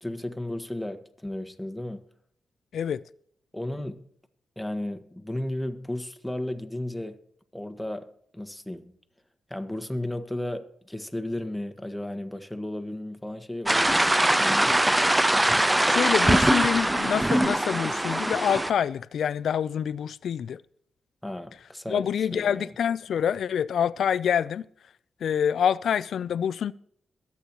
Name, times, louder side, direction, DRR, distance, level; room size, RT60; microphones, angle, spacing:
voice 1, 0.0-2.0 3.5-4.1 4.6-7.2 7.5-8.9 9.5-14.8 21.2-22.7, left 1 dB, 5° left, 1.4 m, -34 dB
voice 2, 2.7-3.0 15.9-20.6 21.9-24.7 25.2-26.7, left 8 dB, 75° left, 0.4 m, -26 dB
sound 1, 13.7-18.7, right 1 dB, 15° right, 0.5 m, -22 dB
22.0 x 8.4 x 3.0 m
cardioid pair, 60°, 0 cm